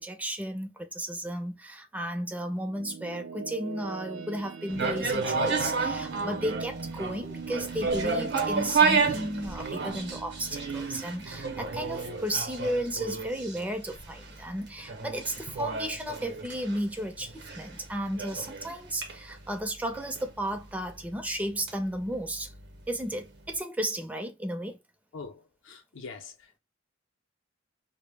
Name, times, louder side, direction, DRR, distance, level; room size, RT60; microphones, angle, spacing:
voice 1, 0.0-22.5 22.9-24.8, right 1 dB, 10° right, 0.4 m, -34 dB
sound 1, 2.2-13.5, right 5 dB, 90° right, 0.5 m, -42 dB
sound 2, 4.7-22.8 23.1-23.2, right 4 dB, 60° right, 0.7 m, -31 dB
voice 2, 25.1-26.6, left 4 dB, 70° left, 0.6 m, -44 dB
2.1 x 2.0 x 3.2 m
head